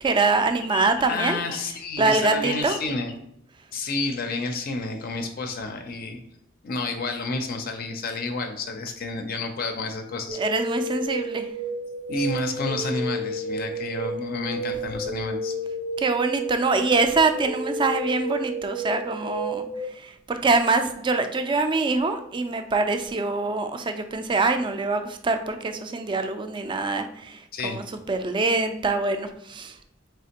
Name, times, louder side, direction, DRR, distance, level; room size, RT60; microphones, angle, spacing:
voice 1, 0.0-1.4 2.0-2.8 10.4-11.5 16.0-19.7 20.0-29.7, right 3 dB, 25° right, 8 dB, 0.3 m, -24 dB
voice 2, 0.7-3.2 3.7-6.2 6.6-10.4 12.1-15.5 27.5-27.8, left 3 dB, 50° left, 5 dB, 0.4 m, -30 dB
sound 1, 10.3-19.8, right 1 dB, 60° right, 0.6 m, -31 dB
4.2 x 3.2 x 2.8 m, 0.76 s
head